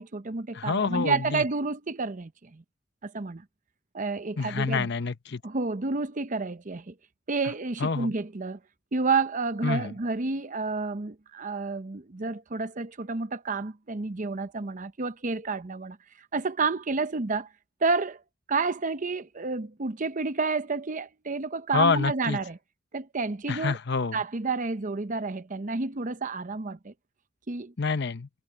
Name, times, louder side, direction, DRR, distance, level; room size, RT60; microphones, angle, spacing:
voice 1, 0.0-2.6 3.0-3.4 3.9-4.9 5.4-6.9 7.3-8.6 8.9-16.0 16.3-17.5 17.8-18.2 18.5-22.6 22.9-23.8 24.1-26.9 27.5-27.7, right 4 dB, 40° right, 0.8 m, -30 dB
voice 2, 0.5-1.4 4.4-5.4 7.8-8.1 9.6-9.9 21.7-22.4 23.5-24.2 27.8-28.3, left 4 dB, 60° left, 0.8 m, -27 dB
head